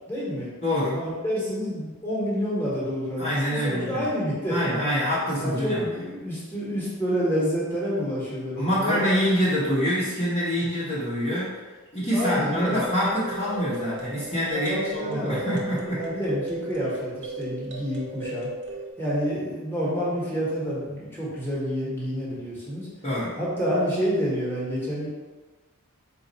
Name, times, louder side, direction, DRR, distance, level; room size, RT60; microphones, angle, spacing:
voice 1, 0.1-0.5 0.9-4.9 5.4-9.1 12.1-12.8 14.5-18.5 19.0-22.9 23.4-25.1, equal, 10° left, -8 dB, 1.2 m, -28 dB
voice 2, 0.6-1.0 3.2-4.0 4.5-5.8 8.6-11.5 11.9-16.0 23.0-23.4, equal, 25° left, -11 dB, 1.0 m, -25 dB
sound 1, 12.2-18.9, right 2 dB, 55° right, 0.8 m, -36 dB
4.1 x 2.5 x 4.0 m, 1.3 s
head